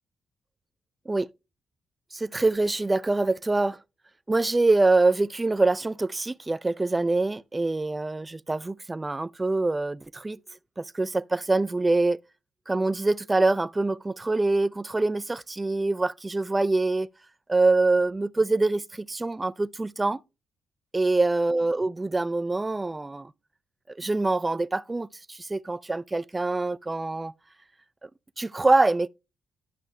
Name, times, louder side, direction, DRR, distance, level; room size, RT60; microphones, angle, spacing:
voice 1, 2.1-3.8 4.3-10.4 10.8-12.2 12.7-17.1 17.5-20.2 20.9-23.3 23.9-27.3 28.0-28.1 28.4-29.1, right 2 dB, 20° right, 0.4 m, -25 dB
11.0 x 5.9 x 3.1 m
supercardioid pair, 60°, 0 cm